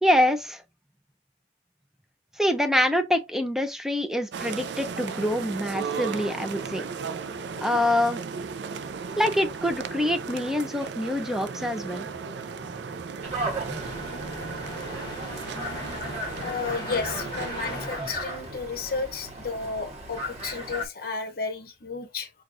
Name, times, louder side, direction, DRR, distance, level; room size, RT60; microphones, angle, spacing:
voice 1, 0.0-0.6 2.4-6.8 7.6-8.2 9.2-12.1, left 1 dB, ahead, 0.5 m, -25 dB
sound 1, 4.3-17.9, right 5 dB, 75° right, 0.4 m, -36 dB
sound 2, 11.5-19.1, left 1 dB, 25° left, 1.0 m, -40 dB
sound 3, 13.2-20.8, right 1 dB, 40° right, 1.1 m, -36 dB
voice 2, 16.4-22.3, left 4 dB, 55° left, 0.8 m, -32 dB
6.2 x 2.3 x 2.5 m
head